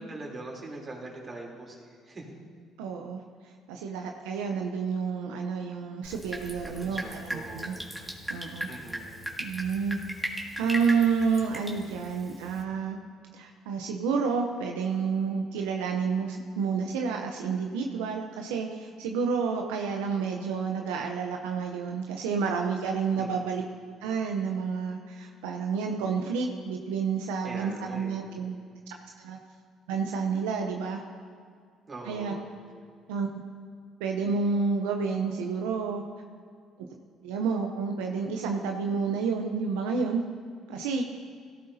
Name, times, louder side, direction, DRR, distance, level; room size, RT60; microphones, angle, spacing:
voice 1, 0.0-2.3 6.8-7.9 8.7-9.2 23.1-23.6 27.4-28.2 31.9-32.5, right 2 dB, 40° right, -2 dB, 3.3 m, -42 dB
voice 2, 2.8-3.2 3.7-7.7 8.3-8.7 9.4-10.0 10.6-13.0 13.3-23.6 24.0-28.6 29.2-29.4 29.9-31.0 32.1-32.3 33.1-33.4 34.0-36.0 37.2-40.2 40.7-41.0, right 5 dB, 90° right, 2 dB, 0.7 m, -29 dB
Drip, 6.0-12.6, equal, 5° right, 2.0 m, -38 dB
17.0 x 12.0 x 2.8 m, 2.2 s
supercardioid pair, 70°, 0 cm